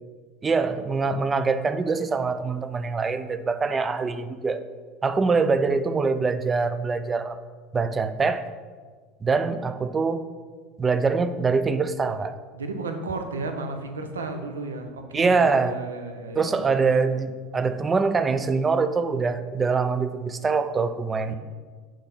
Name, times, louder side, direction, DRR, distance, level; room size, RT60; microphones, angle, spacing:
voice 1, 0.4-4.6 5.0-7.4 7.7-8.5 9.2-10.2 10.8-12.4 15.1-15.8 16.4-21.3, right 4 dB, 20° right, 12 dB, 0.3 m, -24 dB
voice 2, 12.5-16.7 21.3-21.4, right 3 dB, 75° right, 6 dB, 0.5 m, -33 dB
5.3 x 3.5 x 5.2 m, 1.5 s
figure-of-eight pair, 70°, 0 cm